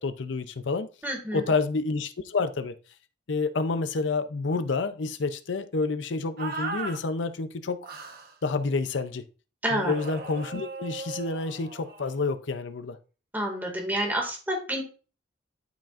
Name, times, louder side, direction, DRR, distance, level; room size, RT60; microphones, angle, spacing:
voice 1, 0.0-0.9 1.3-2.7 3.3-7.9 8.4-9.2 9.7-13.0, left 3 dB, 75° left, 0.6 m, -29 dB
voice 2, 1.0-1.4 9.6-9.9 13.3-14.8, right 1 dB, 10° right, 2.1 m, -28 dB
sound 1, 6.4-7.0 7.8-8.3 9.8-12.2, right 3 dB, 50° right, 1.1 m, -37 dB
12.0 x 5.1 x 2.5 m
head